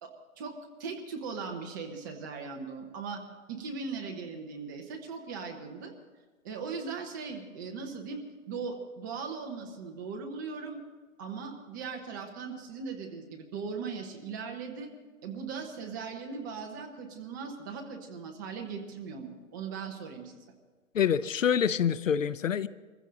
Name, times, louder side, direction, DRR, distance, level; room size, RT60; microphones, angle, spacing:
voice 1, 0.0-3.2 3.5-5.9 6.4-8.2 8.5-10.8 11.2-14.9 15.2-20.3, right 5 dB, 15° right, 2 dB, 0.8 m, -39 dB
voice 2, 20.9-22.7, left 8 dB, 65° left, 17 dB, 0.7 m, -26 dB
24.0 x 15.0 x 3.8 m, 1.4 s
hypercardioid pair, 160°, 42 cm